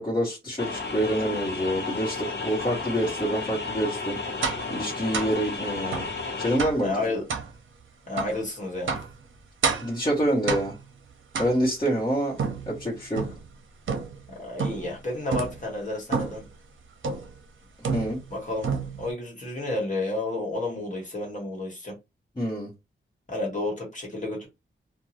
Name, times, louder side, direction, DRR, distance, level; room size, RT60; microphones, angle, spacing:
voice 1, 0.0-4.2 4.7-6.1 6.4-6.9 9.8-10.7 11.4-12.4 12.7-13.2 17.9-18.2 22.4-22.7, right 1 dB, 20° left, 1.1 m, -26 dB
sound 1, 0.6-6.6, left 4 dB, 55° left, 1.0 m, -33 dB
sound 2, 4.4-4.7 5.1-5.4 5.9-6.1 6.6-6.9 7.3-7.5 8.2-8.4 8.9-9.2 9.6-10.0 10.5-10.9 11.3-11.9 12.4-13.5 13.9-14.3 14.6-15.0 15.3-15.6 16.1-16.5 17.0-17.4 17.8-18.3 18.6-19.1, right 5 dB, 70° right, 0.6 m, -29 dB
voice 2, 6.8-7.3 8.1-9.0 14.4-16.4 18.3-18.7 19.0-22.0 23.3-24.5, left 2 dB, 35° left, 1.3 m, -31 dB
2.6 x 2.2 x 3.0 m
wide cardioid pair, 165°, 21 cm